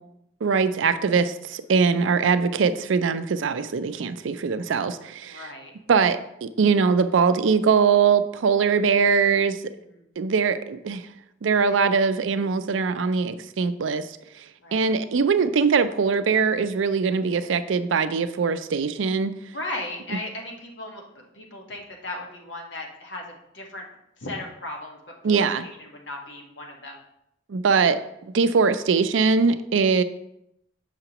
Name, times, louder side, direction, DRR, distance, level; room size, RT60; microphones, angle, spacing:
voice 1, 0.4-5.5 5.9-9.6 10.2-11.1 11.4-14.1 14.7-19.3 25.2-25.6 27.5-30.0, right 5 dB, 90° right, 12 dB, 0.4 m, -22 dB
voice 2, 5.2-5.7 9.7-10.1 14.6-14.9 19.5-23.9 24.2-25.0 25.2-27.0, left 2 dB, 70° left, 0 dB, 1.3 m, -37 dB
6.8 x 5.7 x 2.9 m, 0.80 s
head